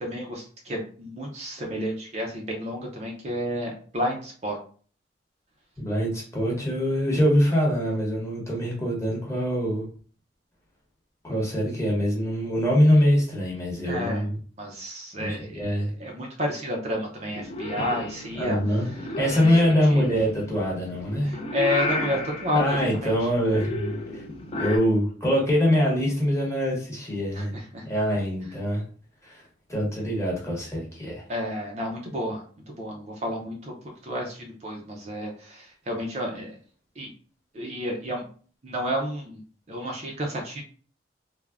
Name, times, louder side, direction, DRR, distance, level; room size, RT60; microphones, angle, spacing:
voice 1, 0.0-4.6 13.8-14.2 14.6-15.7 16.0-18.6 18.8-18.9 19.3-19.6 19.9-20.1 21.2-23.1 27.3-27.8 31.3-33.7 34.0-36.6 37.0-37.1 37.5-38.3 38.6-39.4 39.7-40.6, equal, 35° right, 0 dB, 0.4 m, -31 dB
voice 2, 5.8-9.9 11.2-14.4 15.2-15.9 18.4-18.9 19.2-21.3 22.1-22.2 22.5-24.2 24.6-27.6 27.8-28.8 29.2-29.4 29.7-31.2, equal, 15° left, -3 dB, 0.8 m, -24 dB
Purr / Meow, 17.3-24.8, left 2 dB, 30° left, 0.3 m, -34 dB
3.3 x 2.0 x 2.3 m, 0.43 s
head